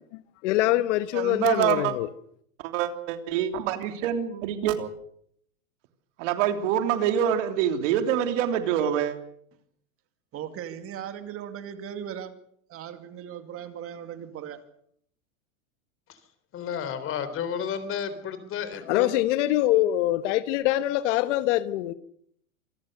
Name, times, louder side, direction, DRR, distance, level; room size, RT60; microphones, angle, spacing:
voice 1, 0.1-2.1 18.7-21.9, left 14 dB, 55° left, 1.4 m, -24 dB
voice 2, 1.1-1.9 2.6-4.9 6.2-9.2, right 10 dB, 55° right, 3.3 m, -25 dB
voice 3, 10.3-12.4 12.7-14.6, right 9 dB, 30° right, 2.5 m, -38 dB
voice 4, 16.5-19.1, left 7 dB, 30° left, 3.7 m, -32 dB
26.5 x 19.5 x 6.7 m
supercardioid pair, 135°, 42 cm